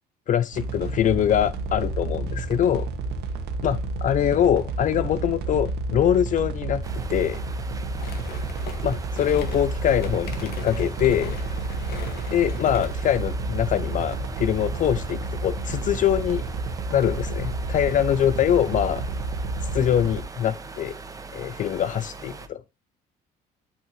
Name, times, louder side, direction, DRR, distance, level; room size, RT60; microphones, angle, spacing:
voice 1, 0.3-2.9 3.6-7.4 8.8-11.4 12.3-16.4 16.9-19.1 19.6-21.0 21.3-22.6, left 10 dB, 50° left, 0.5 m, -23 dB
sound 1, 0.5-20.2, right 3 dB, 80° right, 1.8 m, -30 dB
sound 2, 6.8-22.5, right 4 dB, 20° right, 1.2 m, -40 dB
voice 2, 7.6-8.2 11.6-11.7 17.7-18.1 21.4-21.6, left 8 dB, 90° left, 1.4 m, -49 dB
sound 3, 8.0-13.1, left 6 dB, 65° left, 2.0 m, -39 dB
12.0 x 5.4 x 3.2 m
cardioid pair, 110°, 17 cm